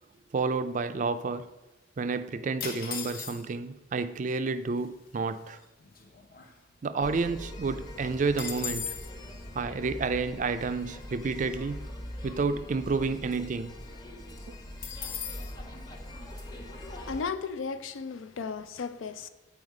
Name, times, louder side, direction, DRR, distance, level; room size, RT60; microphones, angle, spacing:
voice 1, 0.3-1.5 2.0-5.6 6.8-9.0 9.5-11.9 12.2-13.7, right 4 dB, 40° right, 0.3 m, -30 dB
sound 1, 2.6-3.7 4.5-4.6 4.8-5.1 5.6-7.0 7.4-7.5 7.7-9.1 14.8-15.5, left 7 dB, 50° left, 0.8 m, -38 dB
sound 2, 7.0-17.2, left 1 dB, 20° left, 0.8 m, -42 dB
voice 2, 16.7-19.3, left 5 dB, 85° left, 0.5 m, -35 dB
8.0 x 4.5 x 4.8 m
head